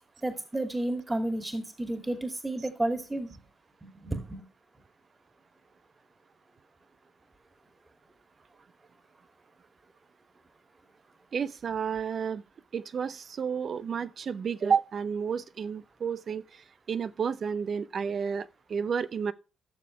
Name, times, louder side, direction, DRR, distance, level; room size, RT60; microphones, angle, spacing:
voice 1, 0.2-3.3 3.8-4.4, right 1 dB, 15° right, 2.2 m, -32 dB
voice 2, 11.3-12.4 12.7-16.6 16.9-19.3, right 6 dB, 50° right, 0.7 m, -31 dB
14.5 x 6.9 x 3.2 m
hypercardioid pair, 45°, 0 cm